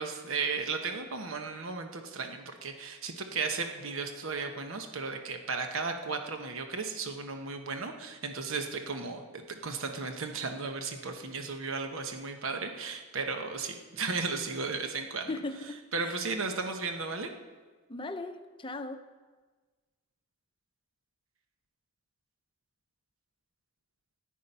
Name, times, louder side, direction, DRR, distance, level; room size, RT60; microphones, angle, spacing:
voice 1, 0.0-15.3 15.9-17.3, right 4 dB, 65° right, 5 dB, 1.1 m, -35 dB
voice 2, 15.3-16.2 17.9-19.0, left 2 dB, 25° left, 7 dB, 0.7 m, -38 dB
13.5 x 10.5 x 5.5 m, 1.4 s
head